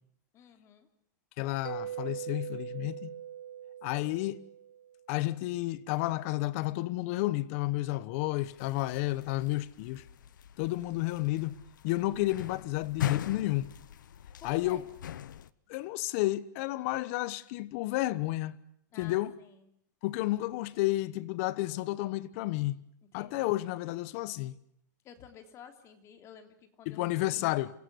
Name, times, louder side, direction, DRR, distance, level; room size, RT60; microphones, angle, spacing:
voice 1, 0.3-0.9 14.4-14.9 18.9-19.7 23.1-23.5 25.0-27.5, left 8 dB, 30° left, 3.1 m, -52 dB
voice 2, 1.4-3.2 3.8-4.4 5.1-10.0 10.6-11.6 11.8-13.7 14.4-14.8 15.7-18.6 19.0-19.3 20.0-22.8 23.1-24.6 26.9-27.7, left 17 dB, 45° left, 1.1 m, -31 dB
Mallet percussion, 1.6-5.1, right 10 dB, 90° right, 1.2 m, -41 dB
sound 1, 8.4-15.5, left 10 dB, 85° left, 1.0 m, -41 dB
27.5 x 16.0 x 9.7 m
supercardioid pair, 145°, 10 cm